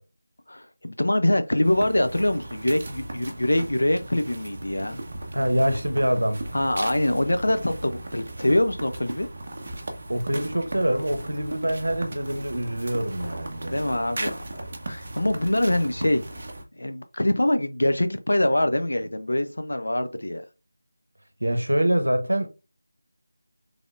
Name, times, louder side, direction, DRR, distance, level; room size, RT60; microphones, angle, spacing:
voice 1, 0.5-5.0 6.5-9.3 13.7-16.2 16.8-20.4, left 1 dB, 70° left, 0.5 m, -24 dB
sound 1, 1.6-16.6, right 1 dB, 40° right, 0.7 m, -37 dB
voice 2, 5.3-6.4 10.1-13.8 21.4-22.5, right 1 dB, 75° right, 0.8 m, -25 dB
3.7 x 3.3 x 2.4 m
figure-of-eight pair, 165°, 0 cm